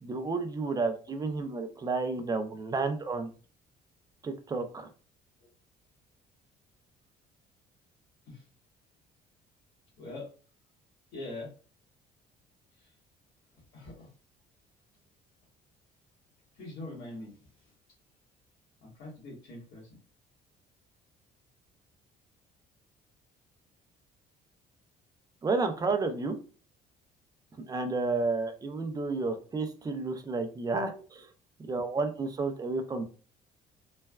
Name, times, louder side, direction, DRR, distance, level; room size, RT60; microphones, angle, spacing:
voice 1, 0.0-3.3 4.2-4.9 25.4-26.4 27.7-31.2 31.6-33.0, right 3 dB, 20° right, 7 dB, 0.5 m, -31 dB
voice 2, 10.0-10.3 11.1-11.5 12.8-12.9 13.7-14.1 16.5-17.3 18.8-19.9 30.9-31.0, left 2 dB, 90° left, -6 dB, 1.2 m, -43 dB
3.2 x 2.2 x 2.2 m, 0.38 s
cardioid pair, 110°, 17 cm